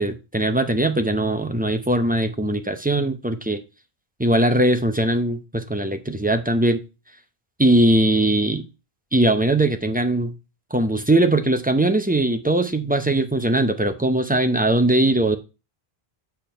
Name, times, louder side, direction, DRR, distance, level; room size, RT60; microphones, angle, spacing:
voice 1, 0.0-3.6 4.2-6.8 7.6-8.6 9.1-10.3 10.7-15.4, right 1 dB, 10° right, 0.5 m, -20 dB
7.1 x 4.7 x 4.5 m
omnidirectional pair, 1.1 m